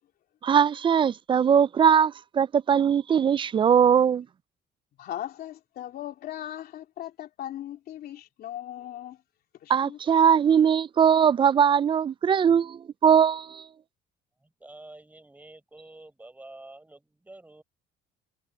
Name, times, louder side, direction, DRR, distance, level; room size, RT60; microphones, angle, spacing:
voice 1, 0.4-4.3 9.7-13.6, right 8 dB, 30° right, 0.3 m, -21 dB
voice 2, 5.0-9.2 9.6-10.0, left 12 dB, 65° left, 3.2 m, -38 dB
voice 3, 14.4-17.6, right 2 dB, 10° right, 4.7 m, -48 dB
cardioid pair, 110°, 17 cm